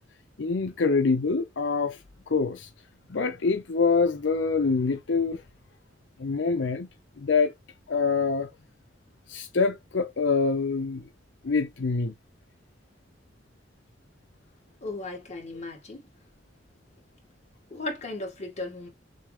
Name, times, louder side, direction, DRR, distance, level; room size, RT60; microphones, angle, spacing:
voice 1, 0.4-2.0 2.3-2.7 3.1-5.4 6.2-6.9 7.2-7.5 7.9-8.5 9.3-11.0 11.4-12.1, left 4 dB, 80° left, 0.6 m, -25 dB
voice 2, 14.8-16.0 17.7-18.9, left 2 dB, 40° left, 1.8 m, -36 dB
6.5 x 2.2 x 3.2 m
head